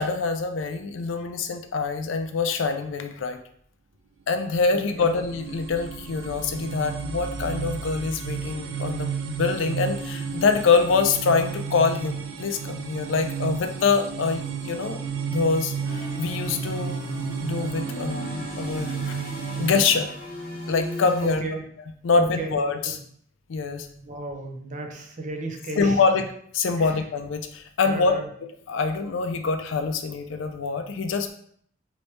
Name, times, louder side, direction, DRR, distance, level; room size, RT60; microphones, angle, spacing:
voice 1, 0.0-3.4 4.3-15.0 15.3-17.0 17.4-19.2 19.6-20.1 20.7-21.4 22.0-23.0 23.5-23.9 25.8-26.2 26.5-28.2 28.7-31.3, left 4 dB, 75° left, 7 dB, 0.4 m, -25 dB
sound 1, 4.6-19.8, right 6 dB, 90° right, 0.4 m, -33 dB
voice 2, 4.7-5.2 21.2-21.6 22.2-22.6 22.8-23.0 24.0-26.0 26.8-27.0 27.8-28.3, right 2 dB, 40° right, 3 dB, 0.6 m, -34 dB
sound 2, 15.9-21.3, left 1 dB, 50° left, 0.9 m, -36 dB
3.1 x 3.1 x 3.1 m, 0.63 s
head